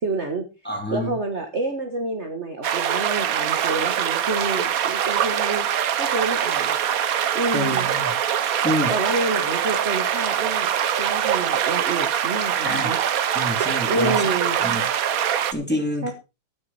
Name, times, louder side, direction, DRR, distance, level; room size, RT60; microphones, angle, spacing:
voice 1, 0.0-0.5 0.9-5.7 6.0-6.7 7.3-7.9 8.9-10.7 11.0-13.0 13.8-14.6 16.0-16.1, right 2 dB, 35° right, 5 dB, 1.5 m, -28 dB
voice 2, 0.6-1.1 7.5-8.1 8.6-8.9 12.6-12.9 13.3-14.3 14.6-14.9 15.5-16.1, equal, 5° left, 3 dB, 2.7 m, -27 dB
sound 1, 2.6-15.5, right 9 dB, 60° right, 0.9 m, -23 dB
12.0 x 9.8 x 4.3 m, 0.29 s
omnidirectional pair, 2.4 m